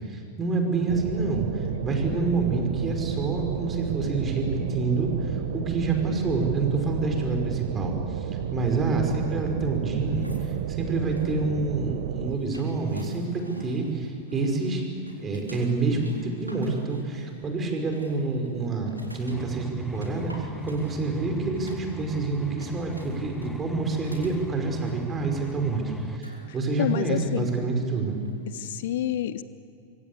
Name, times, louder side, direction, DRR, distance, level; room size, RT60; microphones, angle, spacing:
voice 1, 0.1-14.8 15.2-28.2, right 3 dB, 20° right, 3 dB, 5.3 m, -27 dB
sound 1, 0.9-12.4, right 11 dB, 55° right, 1.0 m, -32 dB
sound 2, 10.0-28.5, left 1 dB, 90° right, 3.8 m, -47 dB
sound 3, 19.3-26.2, left 1 dB, ahead, 1.1 m, -40 dB
voice 2, 26.8-27.5 28.5-29.4, left 12 dB, 55° left, 16 dB, 0.7 m, -28 dB
25.0 x 24.5 x 8.2 m, 2.9 s
figure-of-eight pair, 90°, 0 cm